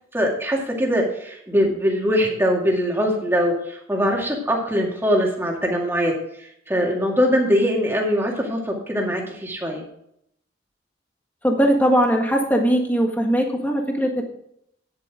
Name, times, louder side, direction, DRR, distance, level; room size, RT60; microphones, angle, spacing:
voice 1, 0.1-6.1 6.7-9.8, equal, 10° right, -1 dB, 2.2 m, -22 dB
voice 2, 11.4-14.2, equal, 10° left, 1 dB, 1.6 m, -20 dB
9.8 x 8.8 x 4.8 m, 0.72 s
head